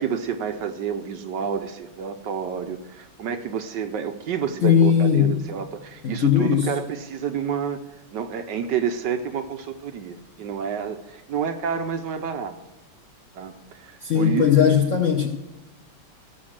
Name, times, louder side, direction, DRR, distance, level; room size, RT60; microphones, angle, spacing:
voice 1, 0.0-7.8 8.1-12.6 13.3-14.8, right 7 dB, 70° right, 8 dB, 1.2 m, -29 dB
voice 2, 4.6-5.3 6.0-6.7 14.0-15.3, left 8 dB, 60° left, 3 dB, 0.8 m, -18 dB
13.5 x 6.2 x 7.3 m, 1.0 s
omnidirectional pair, 2.3 m